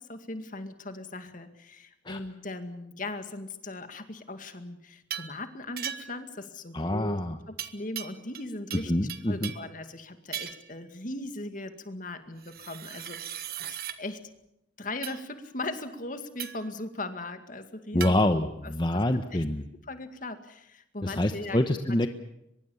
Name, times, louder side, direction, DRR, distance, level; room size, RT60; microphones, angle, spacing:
voice 1, 0.0-7.2 7.5-8.9 9.3-14.2 14.8-18.9 19.3-19.4 19.9-21.6 21.9-22.1, left 2 dB, 45° left, 8 dB, 2.2 m, -39 dB
sound 1, 5.1-5.4 5.8-6.2 7.6-8.4 8.7-9.7 10.3-10.7 12.4-14.0 15.0-15.2 16.4-16.7 18.0-18.2, right 10 dB, 55° right, 1.4 m, -38 dB
voice 2, 6.7-7.4 8.9-9.5 17.9-19.6 21.0-22.1, left 1 dB, 25° left, 7 dB, 1.0 m, -26 dB
24.0 x 22.0 x 7.1 m, 0.83 s
head